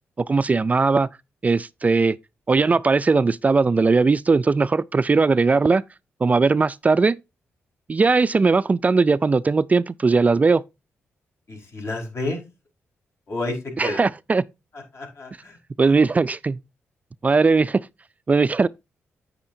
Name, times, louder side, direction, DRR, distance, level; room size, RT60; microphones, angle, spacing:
voice 1, 0.2-1.1 1.4-2.2 2.5-5.8 6.2-7.2 7.9-10.6 13.8-14.4 15.8-16.6 17.2-17.9 18.3-18.7, right 4 dB, 30° right, 0.3 m, -19 dB
voice 2, 11.5-12.4 13.3-14.0 14.9-15.6, left 2 dB, 60° left, 4.9 m, -30 dB
8.7 x 8.6 x 2.7 m
cardioid pair, 70°, 5 cm